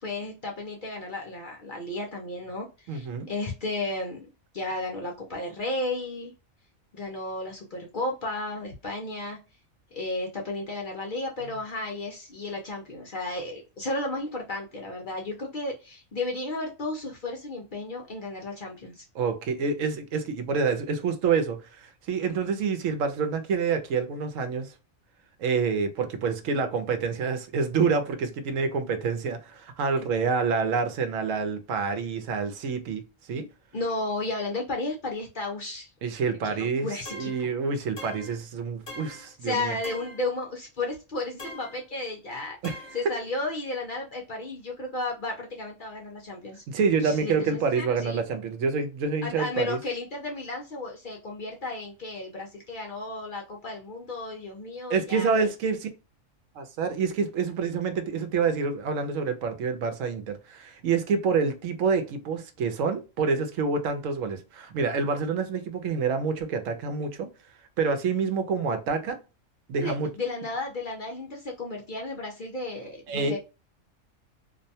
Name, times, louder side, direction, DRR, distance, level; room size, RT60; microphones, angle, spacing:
voice 1, 0.0-4.3 4.5-6.3 6.9-9.4 9.9-19.0 33.7-35.9 36.4-37.5 39.4-42.6 42.9-46.6 47.0-48.2 49.2-55.5 69.8-73.4, left 2 dB, 55° left, 0.6 m, -33 dB
voice 2, 2.9-3.3 19.1-24.7 25.4-33.0 33.3-33.5 36.0-39.7 42.6-42.8 46.7-49.8 54.9-55.9 56.6-67.3 67.8-69.2 69.7-70.1 73.1-73.3, right 5 dB, 80° right, 1.0 m, -27 dB
sound 1, 37.1-37.5 38.0-38.4 38.9-39.3 39.8-40.3 41.4-41.8 42.6-43.1, left 1 dB, 25° left, 0.8 m, -42 dB
2.5 x 2.1 x 2.7 m
omnidirectional pair, 1.4 m